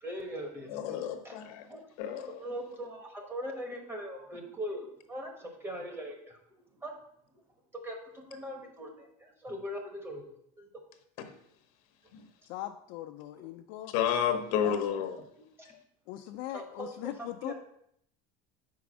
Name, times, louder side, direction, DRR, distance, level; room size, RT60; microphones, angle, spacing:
voice 1, 0.0-1.0 1.2-1.4 1.7-1.8 2.4-6.4 6.8-7.0 7.7-10.3 10.6-10.8 13.4-13.5 14.6-14.7 16.5-16.9 17.2-17.5, equal, 15° right, 2 dB, 1.1 m, -40 dB
voice 2, 0.7-1.7 2.0-2.3 11.2-11.4 12.1-12.2 13.9-15.2, left 9 dB, 80° left, 7 dB, 1.0 m, -31 dB
voice 3, 12.5-13.9 14.6-14.8 16.1-17.5, left 14 dB, 60° left, 6 dB, 0.4 m, -40 dB
5.1 x 4.7 x 6.1 m, 0.72 s
cardioid pair, 165°, 18 cm